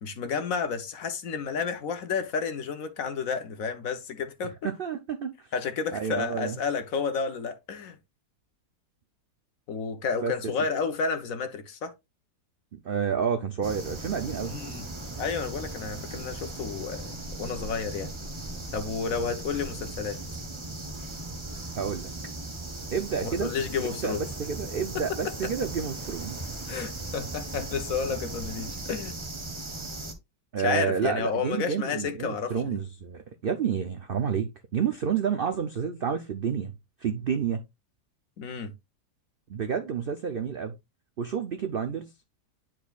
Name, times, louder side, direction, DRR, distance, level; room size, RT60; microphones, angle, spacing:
voice 1, 0.0-4.7 5.5-8.0 9.7-11.9 14.4-14.8 15.2-18.1 18.7-20.2 23.2-24.2 24.9-25.5 26.7-29.1 30.6-32.8 38.4-38.7, left 5 dB, 60° left, 1.2 m, -31 dB
voice 2, 4.6-5.5 5.9-6.6 10.2-10.3 12.7-14.5 21.8-22.1 22.9-23.5 23.9-26.4 30.5-36.7 37.0-37.6 39.5-40.7 41.2-42.1, right 7 dB, 65° right, 0.5 m, -29 dB
sound 1, 13.6-30.1, right 2 dB, 20° right, 0.8 m, -38 dB
10.0 x 4.5 x 2.4 m
omnidirectional pair, 1.7 m